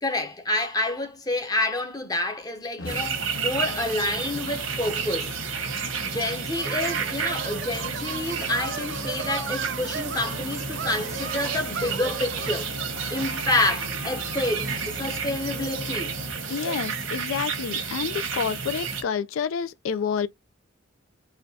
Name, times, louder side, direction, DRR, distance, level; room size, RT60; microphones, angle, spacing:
voice 1, 0.0-5.4 6.1-12.7 13.1-16.1, left 2 dB, 20° left, 0.6 m, -28 dB
Musical instrument, 2.8-16.3, left 3 dB, 65° left, 0.8 m, -42 dB
sound 1, 2.8-19.0, right 5 dB, 80° right, 1.1 m, -31 dB
sound 2, 5.6-13.8, right 7 dB, 60° right, 0.5 m, -37 dB
voice 2, 16.5-20.3, left 6 dB, 85° left, 0.4 m, -29 dB
4.2 x 2.3 x 2.6 m
head